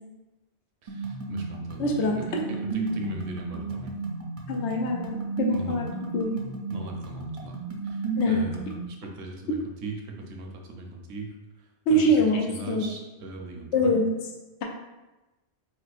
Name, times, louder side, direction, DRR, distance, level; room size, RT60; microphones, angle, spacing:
voice 1, 0.8-3.9 5.5-5.8 6.7-7.6 7.8-8.7 9.0-11.3 11.9-12.2 12.5-13.9, right 2 dB, 80° right, 2 dB, 0.9 m, -39 dB
sound 1, 0.9-8.9, right 3 dB, 50° right, 0.4 m, -33 dB
voice 2, 1.8-2.4 4.5-5.9 6.1-6.3 8.2-8.4 11.9-12.9 13.7-14.1, equal, 90° left, 1 dB, 0.9 m, -24 dB
4.1 x 2.1 x 2.4 m, 1.0 s
omnidirectional pair, 1.1 m